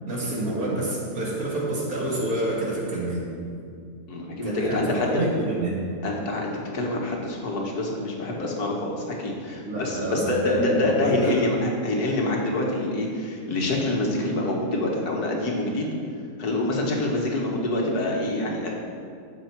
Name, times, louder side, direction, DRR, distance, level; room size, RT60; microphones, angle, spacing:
voice 1, 0.0-3.3 4.4-5.8 9.7-11.5, right 1 dB, 55° right, -5 dB, 2.9 m, -28 dB
voice 2, 4.1-5.2 6.0-15.9 16.4-18.7, left 2 dB, 65° left, -1 dB, 2.1 m, -26 dB
14.5 x 6.7 x 4.6 m, 2.4 s
omnidirectional pair, 1.8 m